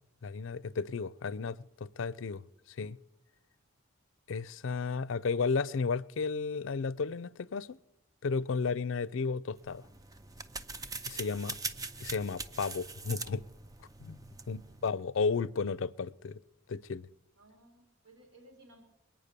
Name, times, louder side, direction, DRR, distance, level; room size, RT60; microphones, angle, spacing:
voice 1, 0.2-2.4 2.7-3.0 4.3-7.8 8.2-9.9 11.1-11.6 12.0-13.4 14.0-14.2 14.5-16.4 16.7-17.1, left 4 dB, 70° left, 0.5 m, -33 dB
sound 1, 9.6-14.9, right 3 dB, 15° right, 0.5 m, -42 dB
voice 2, 11.1-11.7 14.2-14.8 17.3-18.8, right 1 dB, 70° right, 3.1 m, -60 dB
22.0 x 9.1 x 6.7 m
head